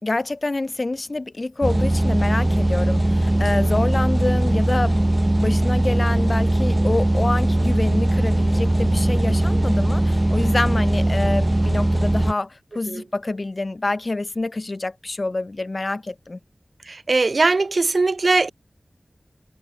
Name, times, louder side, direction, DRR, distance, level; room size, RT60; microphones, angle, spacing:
voice 1, 0.0-5.1 5.4-16.4, left 2 dB, 50° left, 1.8 m, -26 dB
sound 1, 1.6-12.3, right 1 dB, 25° right, 0.9 m, -20 dB
voice 2, 16.9-18.5, right 3 dB, 70° right, 0.3 m, -20 dB
wide cardioid pair, 70°, 0 cm